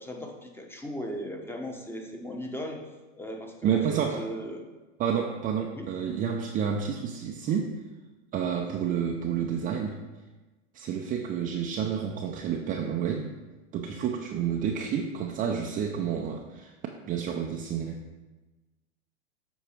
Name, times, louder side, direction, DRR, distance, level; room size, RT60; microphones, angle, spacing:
voice 1, 0.0-2.8 3.2-4.6 5.7-5.9, equal, 5° left, 2 dB, 0.9 m, -37 dB
voice 2, 3.6-4.3 5.0-7.8 8.3-10.0 10.7-13.3 13.7-16.7 17.1-18.1, right 7 dB, 25° right, 2 dB, 0.5 m, -29 dB
8.1 x 4.7 x 4.4 m, 1.2 s
hypercardioid pair, 105°, 36 cm